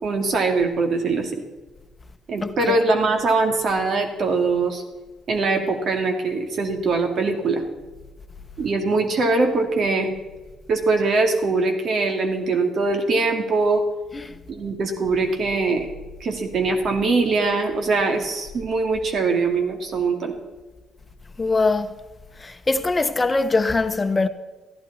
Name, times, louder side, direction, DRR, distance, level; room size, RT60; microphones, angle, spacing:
voice 1, 0.0-1.4 2.3-4.8 5.3-7.6 8.6-10.1 10.7-13.8 14.5-15.9 16.2-20.3, right 3 dB, 60° right, 2.4 m, -22 dB
voice 2, 2.4-2.8 14.1-14.4 21.4-22.0 22.4-24.3, left 3 dB, 25° left, 1.0 m, -22 dB
14.5 x 11.5 x 4.3 m
cardioid pair, 90°, 0 cm